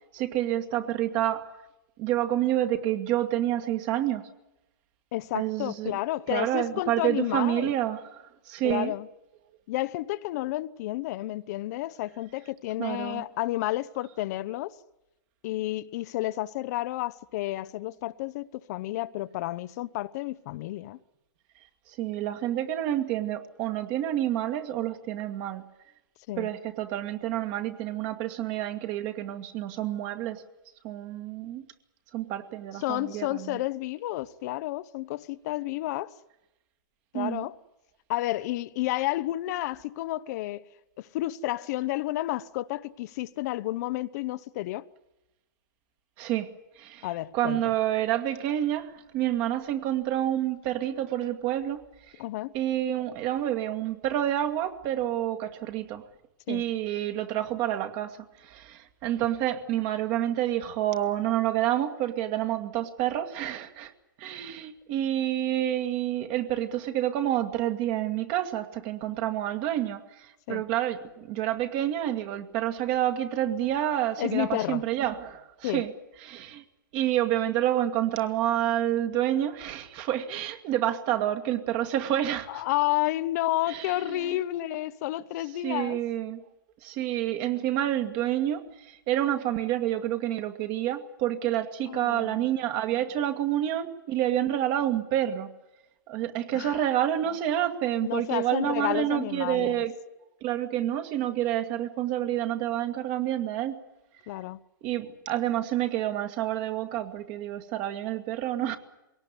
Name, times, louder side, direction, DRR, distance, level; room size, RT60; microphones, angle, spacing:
voice 1, 0.1-1.5 2.0-4.3 5.3-6.0 6.3-8.9 12.8-13.3 22.0-25.6 26.4-30.4 30.8-31.6 32.1-33.6 37.1-37.5 46.2-46.5 46.8-47.1 47.3-51.8 52.5-56.0 56.5-58.2 58.4-63.9 64.2-75.9 76.2-76.6 76.9-82.6 83.7-84.4 85.6-86.4 86.8-95.5 96.1-99.9 100.4-103.8 104.8-108.8, right 12 dB, 40° right, 2.0 m, -28 dB
voice 2, 5.1-7.7 8.6-9.1 9.7-14.7 15.4-21.0 26.3-26.5 32.7-36.1 37.1-37.6 38.1-40.7 41.0-44.8 47.0-47.6 52.2-52.5 56.5-56.6 70.5-70.6 74.2-74.8 75.6-75.8 82.5-86.0 91.9-92.4 96.5-96.8 98.0-99.8 104.3-104.6, left 16 dB, 50° left, 0.7 m, -31 dB
22.0 x 18.0 x 9.9 m
hypercardioid pair, 130°, 11 cm